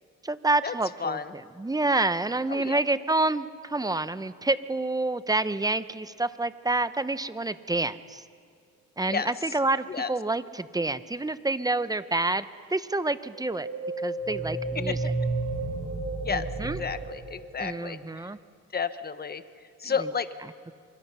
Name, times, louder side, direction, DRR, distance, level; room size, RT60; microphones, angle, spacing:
voice 1, 0.2-1.2 1.6-8.2 9.0-13.7 14.0-15.0 16.3-16.8 17.6-18.4, right 2 dB, 10° right, 13 dB, 0.8 m, -28 dB
voice 2, 1.0-1.3 2.5-2.8 9.1-9.5 9.9-10.1 14.7-15.1 16.2-18.3 18.7-19.4 19.8-20.3, left 6 dB, 30° left, 11 dB, 1.2 m, -32 dB
sound 1, 13.3-18.0, right 2 dB, 55° right, 5.8 m, -32 dB
25.5 x 23.5 x 5.6 m, 2.1 s
cardioid pair, 90°, 30 cm